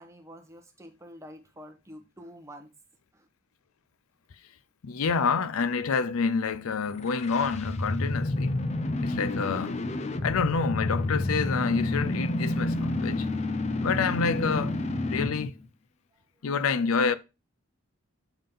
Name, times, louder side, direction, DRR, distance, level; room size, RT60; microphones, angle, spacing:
voice 1, 0.0-2.7 3.1-3.3, equal, 15° right, 1.0 m, -47 dB
voice 2, 4.8-8.5 9.0-9.8 10.2-13.3 13.8-14.7 15.1-15.5 16.4-17.1, left 5 dB, 90° left, 0.5 m, -27 dB
sound 1, 6.9-15.5, left 2 dB, 30° left, 0.5 m, -29 dB
7.1 x 3.7 x 5.3 m
head